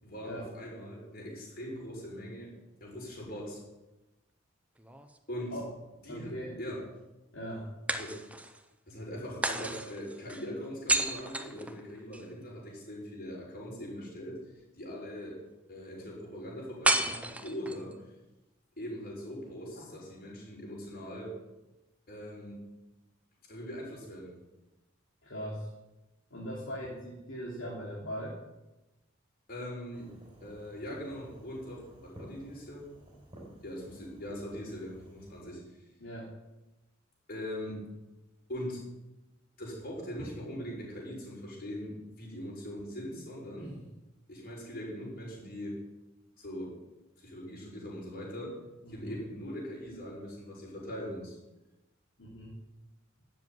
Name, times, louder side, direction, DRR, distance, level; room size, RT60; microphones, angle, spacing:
voice 1, 0.0-2.5 2.8-3.6 5.3-5.6 6.0-6.3 6.6-6.8 8.0-8.1 8.9-14.4 14.8-15.4 15.7-18.0 18.8-21.3 22.1-22.6 23.5-24.3 29.5-30.1 30.4-32.8 33.6-35.6 37.3-37.8 38.5-38.8 39.6-43.7 44.3-45.8 46.4-46.8 47.2-48.6 48.9-51.4, equal, 50° left, -3 dB, 6.8 m, -41 dB
sound 1, 4.8-5.8 7.9-8.6 9.4-12.3 16.8-17.9, right 2 dB, 5° right, 0.9 m, -32 dB
voice 2, 6.1-6.6 7.3-7.7 25.2-25.7 26.3-28.4 36.0-36.3 40.2-40.3 43.5-43.8 48.8-49.2 52.2-52.6, equal, 70° left, -6 dB, 3.2 m, -40 dB
Fireworks, 29.9-35.4, equal, 25° right, 4.3 m, -54 dB
13.0 x 7.8 x 9.5 m, 1.0 s
head